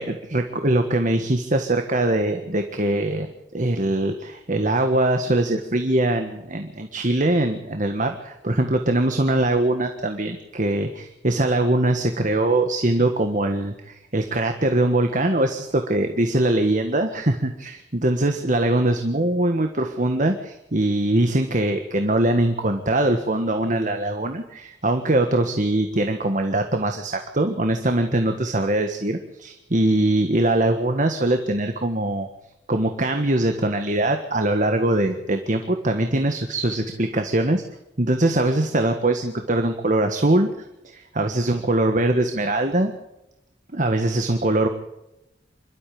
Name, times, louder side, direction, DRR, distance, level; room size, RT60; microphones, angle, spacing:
voice 1, 0.0-3.3 3.5-32.3 32.7-37.6 38.0-40.5 40.8-42.9 43.7-44.7, right 1 dB, 45° right, 5 dB, 1.6 m, -22 dB
26.5 x 13.0 x 8.5 m, 0.93 s
head